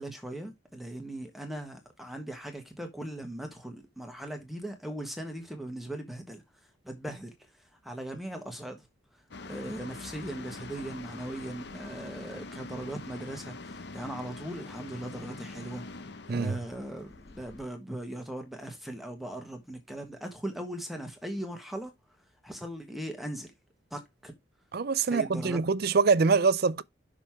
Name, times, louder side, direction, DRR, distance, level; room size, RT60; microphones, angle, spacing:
voice 1, 0.0-6.4 6.8-7.3 7.8-8.9 9.5-15.8 16.3-21.9 22.4-23.5 23.9-24.3 25.1-25.6, right 1 dB, ahead, 1.3 m, -39 dB
sound 1, 9.3-17.7, left 3 dB, 55° left, 0.7 m, -44 dB
voice 2, 16.3-16.6 24.7-26.8, right 4 dB, 50° right, 0.5 m, -24 dB
6.1 x 5.6 x 4.6 m
head